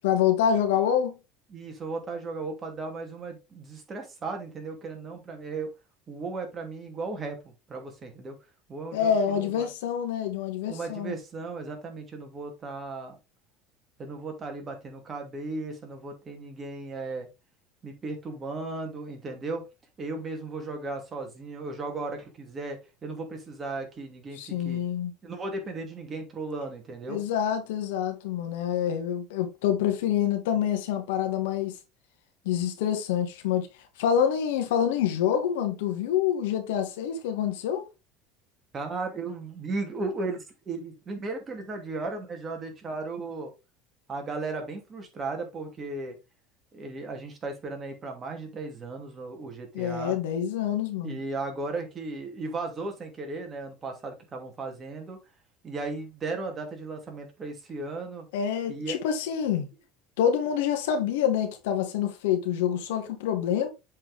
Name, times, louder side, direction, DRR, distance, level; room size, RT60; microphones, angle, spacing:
voice 1, 0.0-1.1 8.9-11.1 24.3-25.1 27.1-31.8 32.5-33.7 34.0-37.9 49.7-51.2 58.3-59.7 60.2-63.7, left 9 dB, 90° left, 1.8 m, -26 dB
voice 2, 1.5-5.7 6.1-8.4 8.7-9.7 10.7-13.2 14.0-17.3 17.8-19.6 20.0-24.8 25.2-27.2 38.7-43.5 44.1-46.2 46.7-50.2 51.0-55.2 55.6-58.3 58.7-59.0, right 3 dB, 30° right, 2.5 m, -36 dB
7.4 x 4.7 x 3.6 m
supercardioid pair, 115°, 0 cm